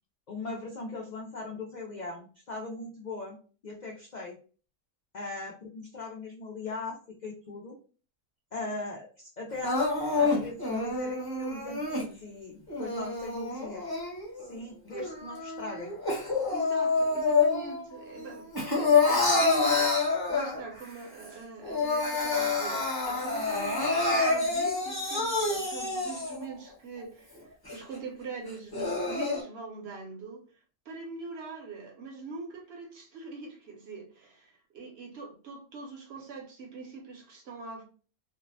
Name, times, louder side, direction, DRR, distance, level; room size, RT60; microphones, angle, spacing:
voice 1, 0.3-3.4 3.6-4.3 5.1-7.8 8.5-13.9 14.5-15.9, left 3 dB, 85° left, 0.4 m, -39 dB
Crying sobbing, 9.6-12.1 12.7-14.5 14.9-17.8 18.2-20.8 21.2-21.3 21.6-26.5 27.0-27.1 27.7-27.8 28.5-29.4, left 4 dB, 20° left, 0.7 m, -27 dB
voice 2, 16.5-18.5 18.7-19.8 20.3-30.5 30.9-37.8, right 3 dB, 55° right, 0.8 m, -42 dB
2.6 x 2.0 x 2.6 m
omnidirectional pair, 1.4 m